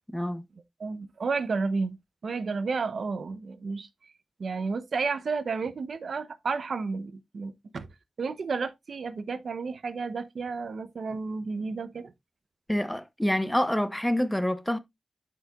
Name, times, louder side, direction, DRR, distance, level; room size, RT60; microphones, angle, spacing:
voice 1, 0.1-0.4 12.7-14.8, equal, 5° left, 0.8 m, -27 dB
voice 2, 0.8-2.0 2.2-3.9 4.4-7.9 8.2-12.1, right 4 dB, 65° right, 0.8 m, -31 dB
12.0 x 4.6 x 2.4 m
wide cardioid pair, 100°, 0 cm